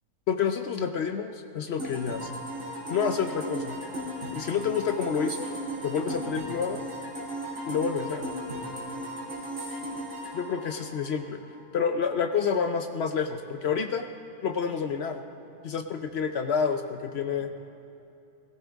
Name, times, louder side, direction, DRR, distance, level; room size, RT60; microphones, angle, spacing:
voice 1, 0.3-2.3 2.9-3.8 4.3-5.5 5.8-6.8 7.7-8.3 10.3-11.4 11.7-14.1 14.4-15.2 15.6-17.5, left 6 dB, 70° left, 7 dB, 0.6 m, -28 dB
sound 1, 1.8-11.5, right 1 dB, 45° right, 2.8 m, -36 dB
17.5 x 15.5 x 3.5 m, 2.8 s
omnidirectional pair, 1.7 m